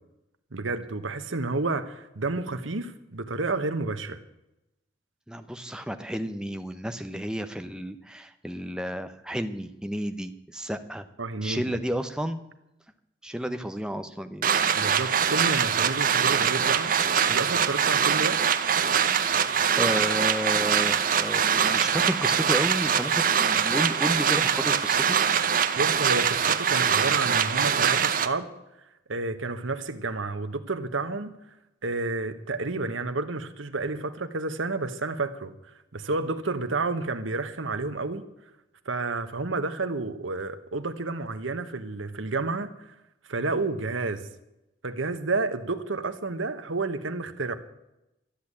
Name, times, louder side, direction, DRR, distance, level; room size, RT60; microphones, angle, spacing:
voice 1, 0.5-4.2 11.2-11.8 14.8-16.9 17.3-18.4 25.8-28.5 29.1-31.4 31.8-35.5 35.9-38.2 38.8-42.9 43.3-44.3 44.8-47.5, right 3 dB, 90° right, 1.2 m, -30 dB
voice 2, 5.3-11.0 11.4-12.4 13.2-14.5 19.2-25.2, equal, 5° right, 0.8 m, -32 dB
sound 1, 14.4-28.3, right 7 dB, 45° right, 0.7 m, -23 dB
13.5 x 8.3 x 8.6 m
head